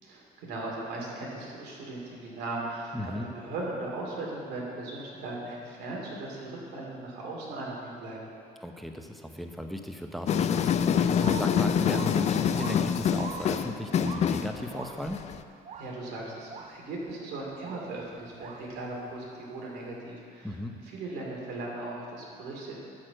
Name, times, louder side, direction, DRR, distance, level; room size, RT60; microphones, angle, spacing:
voice 1, 0.0-8.2 15.8-20.6 20.9-22.8, right 2 dB, 80° right, -3 dB, 2.4 m, -38 dB
voice 2, 2.9-3.3 8.6-15.2 20.4-20.7, left 1 dB, ahead, 4 dB, 0.7 m, -36 dB
sound 1, 10.3-15.4, left 8 dB, 40° left, 0.4 m, -26 dB
sound 2, 11.2-15.3 15.6-16.1 16.5-17.1 17.5-19.1 19.6-19.7, right 5 dB, 40° right, 0.7 m, -44 dB
11.5 x 4.4 x 7.6 m, 2.5 s
cardioid pair, 110°, 17 cm